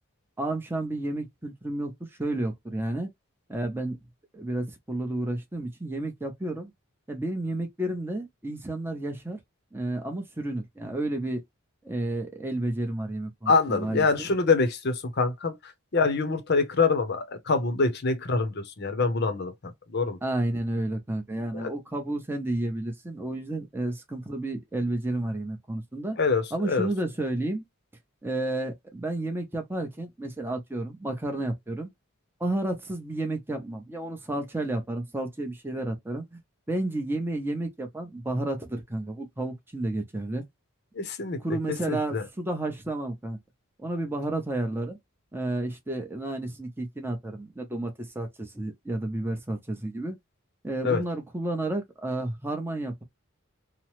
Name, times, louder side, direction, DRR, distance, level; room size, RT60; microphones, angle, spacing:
voice 1, 0.4-3.1 3.5-4.0 4.3-6.7 7.1-9.4 9.7-11.4 11.8-14.3 20.2-26.2 26.5-27.6 28.2-31.9 32.4-36.4 36.7-40.4 41.4-43.4 43.8-45.0 45.3-50.2 50.6-53.0, right 1 dB, 10° right, 0.7 m, -31 dB
voice 2, 13.5-20.2 21.5-21.7 26.2-26.9 41.0-41.4 41.9-42.2 50.8-51.0, left 4 dB, 50° left, 0.7 m, -25 dB
3.0 x 2.1 x 3.0 m
head